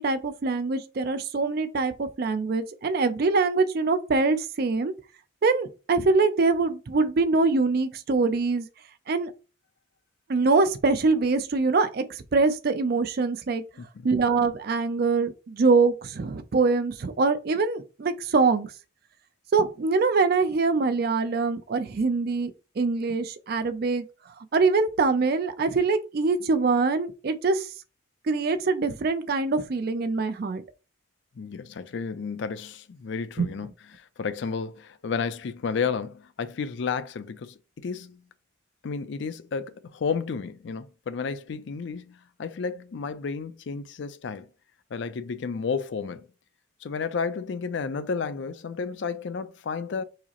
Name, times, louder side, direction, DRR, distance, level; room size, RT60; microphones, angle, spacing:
voice 1, 0.0-4.9 5.4-8.7 9.1-9.3 10.3-13.6 14.0-18.7 19.5-22.5 22.8-24.0 24.5-27.7 28.3-30.6 33.4-33.5, right 4 dB, 50° right, 0.4 m, -24 dB
voice 2, 31.4-38.2 38.8-44.5 44.9-46.3 46.8-50.0, left 5 dB, 60° left, 0.4 m, -32 dB
4.7 x 2.0 x 2.8 m
head